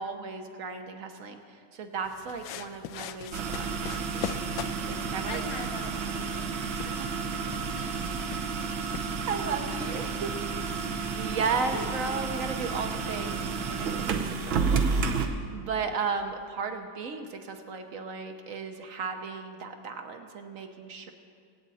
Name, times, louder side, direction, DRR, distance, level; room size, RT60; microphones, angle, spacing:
voice 1, 0.0-1.4 1.7-4.4 4.9-5.4 6.8-7.1 9.3-10.3 11.1-21.1, right 5 dB, 55° right, 6 dB, 1.0 m, -35 dB
sound 1, 2.0-9.5, left 9 dB, 80° left, 1.3 m, -42 dB
sound 2, 3.3-15.3, right 5 dB, 85° right, 1.7 m, -31 dB
voice 2, 5.2-6.5 6.8-8.8 9.1-10.3 10.6-10.7 11.7-11.9, left 3 dB, 55° left, 4 dB, 1.3 m, -45 dB
24.5 x 8.6 x 4.1 m, 2.3 s
omnidirectional pair, 2.1 m